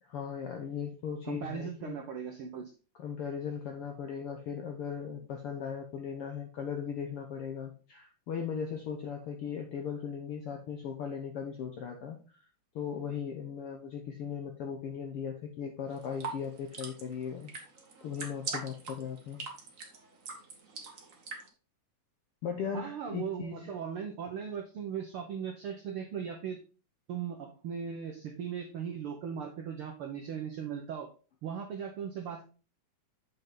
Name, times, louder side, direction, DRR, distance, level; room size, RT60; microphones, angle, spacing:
voice 1, 0.0-2.0 3.0-12.2 12.7-17.5 18.0-19.4 22.4-23.7, left 7 dB, 70° left, 3 dB, 1.3 m, -38 dB
voice 2, 1.2-2.7 22.7-26.6 27.1-31.1 31.4-32.4, right 7 dB, 75° right, 2 dB, 1.2 m, -38 dB
sound 1, 15.9-21.5, right 4 dB, 55° right, 0.9 m, -42 dB
7.4 x 5.5 x 3.8 m, 0.36 s
omnidirectional pair, 3.6 m